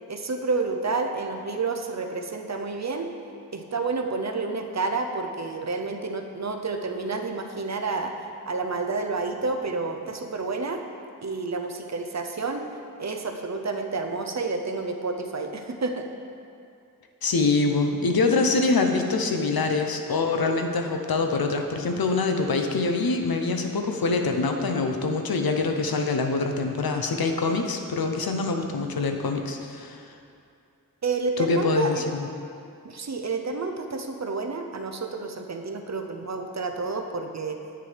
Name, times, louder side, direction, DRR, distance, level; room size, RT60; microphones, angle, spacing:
voice 1, 0.1-3.1 3.5-8.1 8.5-10.8 11.2-12.6 13.0-16.1 31.0-32.0 32.8-37.6, right 3 dB, 50° right, 4 dB, 0.6 m, -29 dB
voice 2, 17.2-30.0 31.4-32.3, left 3 dB, 80° left, 4 dB, 0.7 m, -24 dB
9.0 x 6.6 x 3.3 m, 2.5 s
wide cardioid pair, 80°, 35 cm